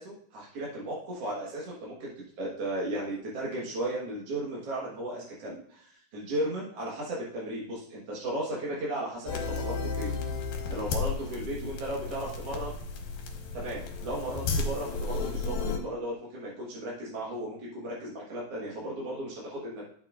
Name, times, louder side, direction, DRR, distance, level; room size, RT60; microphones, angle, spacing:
voice 1, 0.0-2.1 2.4-12.8 13.5-19.8, right 1 dB, 50° right, -5 dB, 2.1 m, -35 dB
sound 1, 9.3-15.8, left 4 dB, 75° left, 2.9 m, -33 dB
11.5 x 7.1 x 2.5 m, 0.67 s
omnidirectional pair, 4.0 m